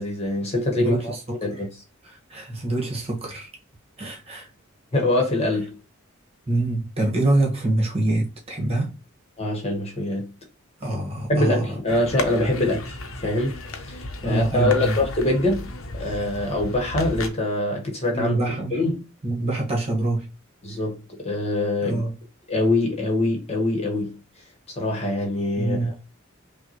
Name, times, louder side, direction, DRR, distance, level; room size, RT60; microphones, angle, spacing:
voice 1, 0.0-1.1 1.4-1.7 4.9-5.8 9.4-10.3 11.3-13.6 13.9-15.7 15.9-18.3 18.7-19.0 20.6-22.0 22.5-24.2 24.8-25.8, left 1 dB, 30° left, 1.3 m, -24 dB
voice 2, 0.8-1.4 2.0-3.5 4.0-4.5 6.5-9.0 10.8-11.8 14.2-15.0 18.1-18.8 19.2-20.3 21.8-22.2 25.6-26.0, right 2 dB, 30° right, 1.5 m, -25 dB
sound 1, 11.9-17.3, left 2 dB, 75° left, 0.8 m, -34 dB
5.6 x 2.4 x 3.0 m
head